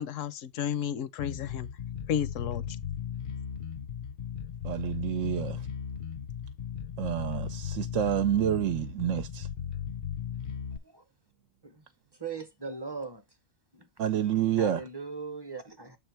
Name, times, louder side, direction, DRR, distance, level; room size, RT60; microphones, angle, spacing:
voice 1, 0.0-1.7 2.1-2.6, left 9 dB, 70° left, 1.0 m, -32 dB
Bass guitar, 1.2-10.8, left 8 dB, 50° left, 0.6 m, -37 dB
voice 2, 4.6-5.6 7.0-9.5 14.0-14.8, right 10 dB, 70° right, 1.0 m, -28 dB
voice 3, 12.2-13.2 13.7-13.9 14.2-16.0, right 4 dB, 25° right, 0.7 m, -40 dB
7.2 x 3.5 x 4.5 m
omnidirectional pair, 1.4 m